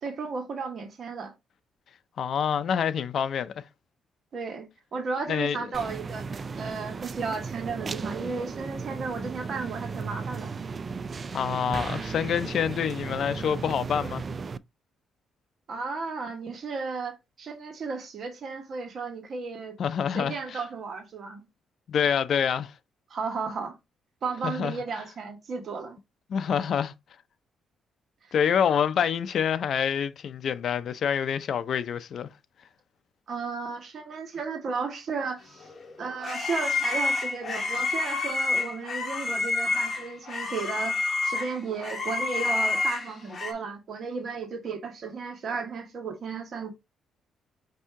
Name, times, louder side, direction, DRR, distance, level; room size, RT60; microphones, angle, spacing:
voice 1, 0.0-1.3 4.3-6.3 6.6-10.5 15.7-19.8 20.1-21.4 23.1-23.8 24.2-26.0 28.3-28.4 33.3-35.6 36.0-41.0 41.2-46.7, right 4 dB, 55° right, 1.2 m, -34 dB
voice 2, 2.2-3.6 5.3-5.6 11.3-14.2 19.8-20.4 21.9-22.7 24.4-24.8 26.3-26.9 28.3-32.3, left 8 dB, 60° left, 0.5 m, -26 dB
sound 1, 5.7-14.6, right 4 dB, 40° right, 0.3 m, -35 dB
sound 2, 35.6-43.5, left 3 dB, 40° left, 1.2 m, -29 dB
5.4 x 2.7 x 3.6 m
cardioid pair, 90°, 0 cm